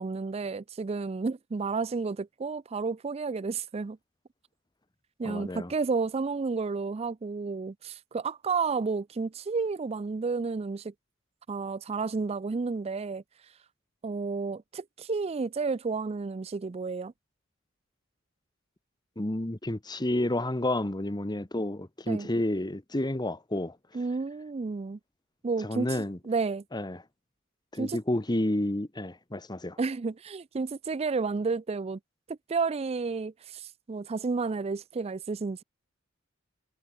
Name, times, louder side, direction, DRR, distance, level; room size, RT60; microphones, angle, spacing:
voice 1, 0.0-4.0 5.2-10.9 11.5-13.2 14.0-17.1 22.1-22.3 23.9-25.0 25.4-25.9 26.3-26.6 27.8-28.0 29.8-32.0 32.3-35.6, right 4 dB, 30° right, 0.4 m, -31 dB
voice 2, 5.2-5.7 19.2-23.8 25.6-26.2 26.7-27.0 27.7-29.8, left 1 dB, 20° left, 1.3 m, -30 dB
head